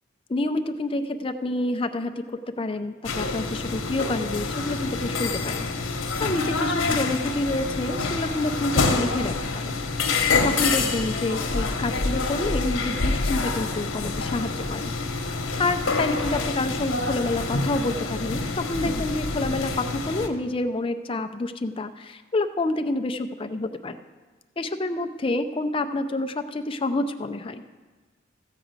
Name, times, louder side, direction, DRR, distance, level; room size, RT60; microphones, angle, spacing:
voice 1, 0.3-2.2 2.6-5.7 5.9-9.8 10.4-14.9 15.6-24.0 24.6-27.6, left 2 dB, 25° left, 8 dB, 0.5 m, -28 dB
sound 1, 3.0-20.3, left 3 dB, 80° left, 1.0 m, -27 dB
14.5 x 5.0 x 8.0 m, 1.3 s
head